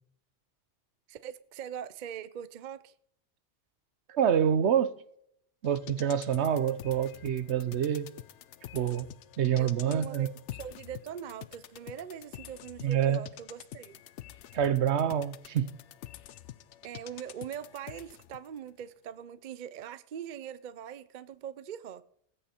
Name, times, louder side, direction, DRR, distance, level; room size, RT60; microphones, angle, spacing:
voice 1, 1.1-2.9 9.5-14.0 16.8-22.0, right 9 dB, 50° right, 0.6 m, -42 dB
voice 2, 4.1-4.9 5.6-8.1 8.7-9.1 9.4-10.3 12.8-13.2 14.5-15.7, right 9 dB, 70° right, 1.0 m, -27 dB
sound 1, 5.6-18.5 18.8-18.9, left 12 dB, 75° left, 0.9 m, -48 dB
19.0 x 8.7 x 4.3 m
omnidirectional pair, 1.2 m